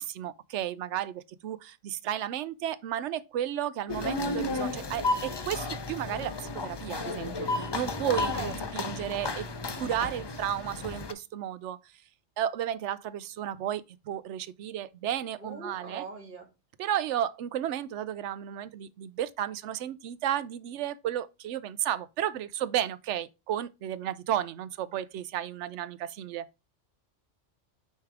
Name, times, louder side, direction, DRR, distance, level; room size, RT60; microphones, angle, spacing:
voice 1, 0.0-9.5 9.8-11.8 12.4-16.0 16.8-26.5, right 11 dB, 70° right, 0.9 m, -33 dB
sound 1, 3.9-11.1, left 2 dB, 45° left, 0.3 m, -33 dB
voice 2, 8.3-8.9 15.4-16.5, right 3 dB, 40° right, 1.6 m, -41 dB
9.2 x 3.3 x 4.8 m
omnidirectional pair, 1.3 m